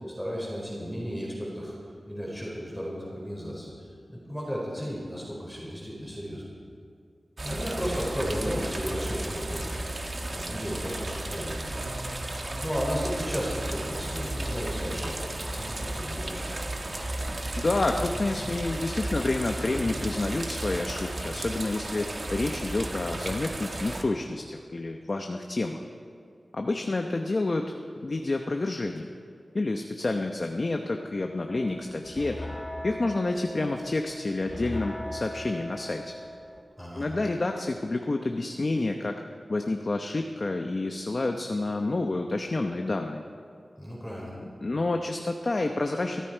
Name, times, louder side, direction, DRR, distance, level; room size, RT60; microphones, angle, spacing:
voice 1, 0.1-1.8 2.1-3.7 4.1-6.5 7.4-9.8 10.3-11.6 12.6-16.6 36.8-37.1 43.8-44.3, equal, ahead, -5 dB, 4.6 m, -34 dB
sound 1, 7.4-24.0, right 1 dB, 40° right, 1.6 m, -34 dB
voice 2, 17.6-25.8 26.5-27.8 28.0-29.1 29.5-32.4 32.8-36.1 36.9-39.2 39.5-43.2 44.4-46.2, left 2 dB, 45° left, 4 dB, 0.8 m, -29 dB
sound 2, 31.5-36.6, left 1 dB, 25° left, 1.8 m, -39 dB
23.5 x 13.5 x 4.5 m, 2.3 s
wide cardioid pair, 95°, 0 cm